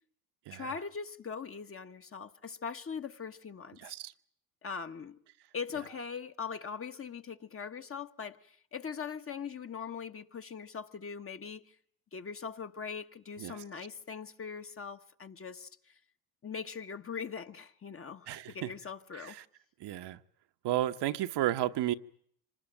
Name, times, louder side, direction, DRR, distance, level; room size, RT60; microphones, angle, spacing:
voice 1, 0.5-3.9 4.6-5.2 5.5-11.8 12.1-15.9 16.4-19.4, left 6 dB, 25° left, 1.3 m, -41 dB
voice 2, 3.8-4.1 13.4-13.6 18.3-18.7 19.1-19.4 19.8-20.2 20.6-21.9, right 13 dB, 55° right, 1.1 m, -33 dB
25.5 x 20.0 x 9.0 m
supercardioid pair, 85°, 50 cm